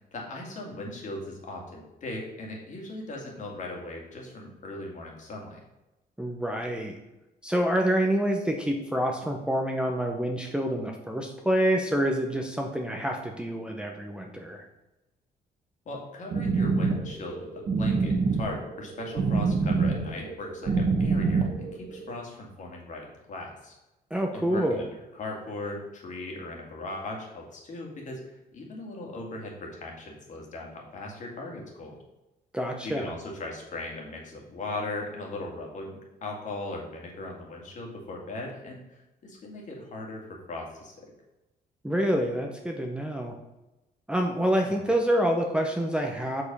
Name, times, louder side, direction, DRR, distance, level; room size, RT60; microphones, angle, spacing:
voice 1, 0.0-5.6 15.9-23.8 24.3-24.9 25.1-28.2 28.5-32.0 32.8-41.1 44.6-44.8, left 2 dB, 50° left, 0 dB, 2.1 m, -38 dB
voice 2, 6.2-7.0 7.4-14.7 24.1-24.8 32.5-33.1 41.8-43.3 44.1-46.4, equal, 5° right, 2 dB, 0.7 m, -27 dB
sound 1, 16.3-22.1, right 4 dB, 45° right, 1.2 m, -26 dB
6.6 x 4.9 x 5.4 m, 0.98 s
cardioid pair, 130°, 17 cm